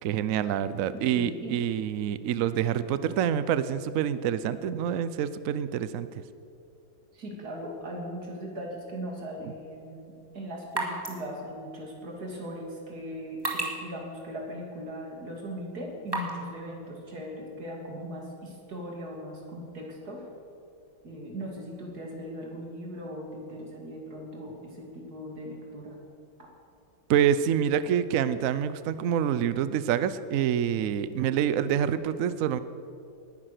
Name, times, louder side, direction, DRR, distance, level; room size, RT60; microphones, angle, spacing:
voice 1, 0.0-6.1 9.4-9.5 27.1-32.6, right 9 dB, 85° right, 14 dB, 0.7 m, -27 dB
voice 2, 0.9-1.6 7.1-20.3 21.0-26.0 26.4-26.5, equal, 50° right, 0 dB, 3.1 m, -39 dB
sound 1, 9.7-16.5, right 2 dB, 10° right, 2.0 m, -39 dB
19.0 x 10.0 x 6.6 m, 2.5 s
omnidirectional pair, 2.2 m